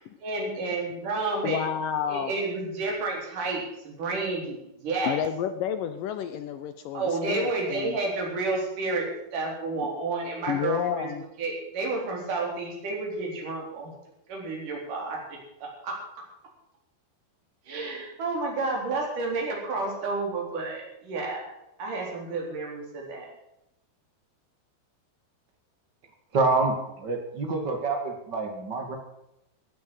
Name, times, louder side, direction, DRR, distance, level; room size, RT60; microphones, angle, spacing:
voice 1, 0.2-1.6 2.1-5.2 6.9-11.1 11.4-13.9 14.3-16.0 17.7-21.5 21.8-23.3, right 3 dB, 55° right, -1 dB, 5.3 m, -30 dB
voice 2, 1.4-2.4 5.0-8.0 10.5-11.2, left 9 dB, 75° left, 10 dB, 2.2 m, -30 dB
voice 3, 26.3-29.0, right 3 dB, 35° right, 4 dB, 2.4 m, -27 dB
15.5 x 9.2 x 8.1 m, 0.85 s
omnidirectional pair, 4.4 m